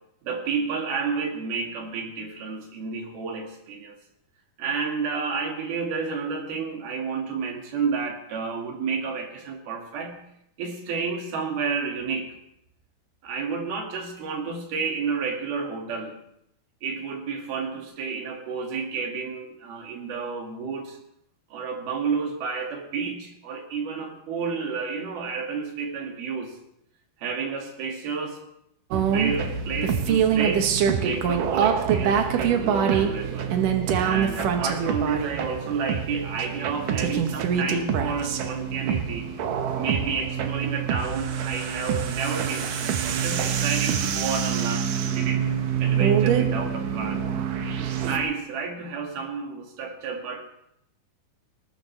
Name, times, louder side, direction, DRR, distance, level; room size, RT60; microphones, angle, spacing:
voice 1, 0.2-4.0 4.6-10.2 10.6-12.3 13.2-16.1 16.8-21.0 21.5-26.6 27.2-28.4 29.1-33.6 34.0-39.3 39.7-45.5 45.8-47.2 47.8-50.4, right 5 dB, 90° right, 2 dB, 4.1 m, -30 dB
sound 1, 28.9-48.2, right 8 dB, 70° right, 2.6 m, -25 dB
20.0 x 19.5 x 3.3 m, 0.77 s
omnidirectional pair, 4.2 m